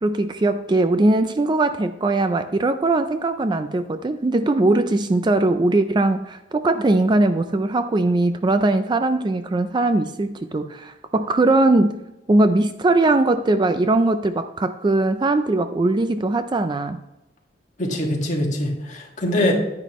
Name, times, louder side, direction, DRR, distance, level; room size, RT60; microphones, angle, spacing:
voice 1, 0.0-12.0 12.3-17.0, right 2 dB, 25° right, 10 dB, 0.3 m, -20 dB
voice 2, 17.8-19.5, left 1 dB, 40° left, 0 dB, 1.8 m, -23 dB
9.9 x 9.8 x 3.0 m, 0.94 s
head